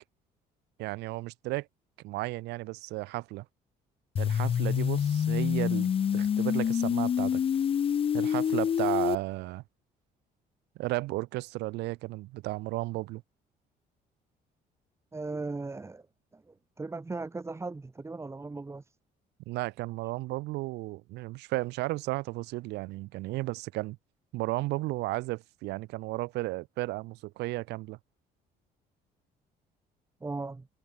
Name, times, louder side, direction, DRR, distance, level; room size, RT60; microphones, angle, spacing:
voice 1, 0.8-1.7 2.0-3.4 4.2-7.4 8.1-9.6 10.8-13.2 19.5-24.0 24.3-28.0, right 20 dB, 85° right, 1.3 m, -34 dB
sound 1, 4.2-9.2, left 8 dB, 35° left, 0.5 m, -27 dB
voice 2, 15.1-16.1 16.3-18.9 30.2-30.7, right 3 dB, 15° right, 1.3 m, -38 dB
cardioid pair, 110°, 17 cm